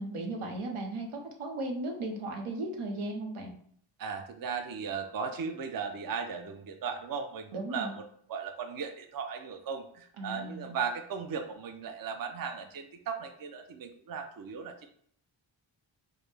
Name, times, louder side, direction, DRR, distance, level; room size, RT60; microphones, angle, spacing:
voice 1, 0.0-3.5 7.5-8.0 10.2-10.8, right 2 dB, 85° right, 2 dB, 0.9 m, -36 dB
voice 2, 4.0-8.0 8.3-14.9, right 6 dB, 45° right, 5 dB, 0.5 m, -37 dB
4.8 x 2.1 x 3.3 m, 0.63 s
wide cardioid pair, 90°, 49 cm